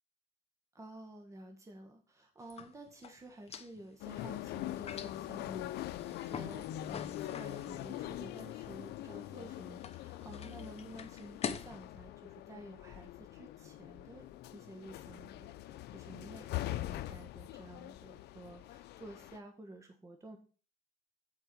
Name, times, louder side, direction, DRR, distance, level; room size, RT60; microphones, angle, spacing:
voice 1, 0.7-20.4, right 1 dB, 20° right, 3 dB, 1.5 m, -52 dB
sound 1, 2.4-11.8, left 7 dB, 35° left, 0.7 m, -46 dB
sound 2, 4.0-19.4, left 14 dB, 75° left, 0.6 m, -43 dB
8.5 x 4.7 x 6.0 m, 0.36 s
cardioid pair, 110°, 17 cm